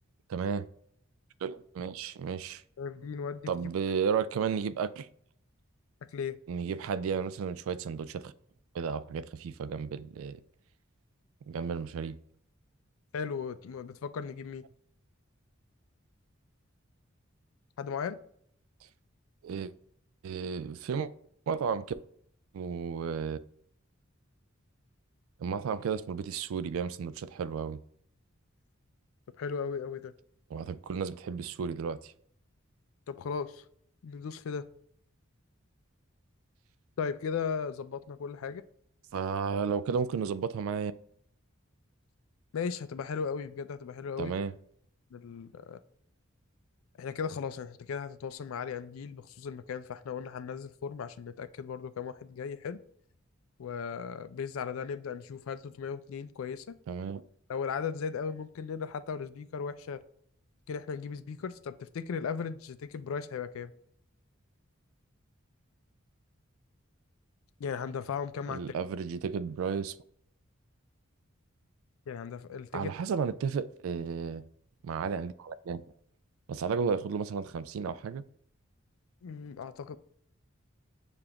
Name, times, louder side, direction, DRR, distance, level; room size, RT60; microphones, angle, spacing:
voice 1, 0.3-0.7 1.4-2.6 3.5-5.1 6.5-8.3 8.7-10.4 11.5-12.2 19.4-19.7 20.2-21.1 21.5-21.8 22.5-23.4 25.4-27.8 30.5-32.1 39.1-40.9 44.2-44.5 56.9-57.2 68.5-70.0 72.7-74.4 74.8-75.8 76.5-78.2, right 6 dB, 80° right, 0.3 m, -33 dB
voice 2, 2.8-3.5 6.1-6.4 13.1-14.6 17.8-18.2 29.4-30.1 33.1-33.6 34.0-34.7 37.0-38.6 42.5-44.3 45.1-45.8 47.0-52.8 53.6-56.8 57.5-60.0 60.7-63.7 67.6-68.6 72.1-72.9 79.2-80.0, left 6 dB, 80° left, 0.4 m, -36 dB
6.8 x 2.5 x 2.8 m
head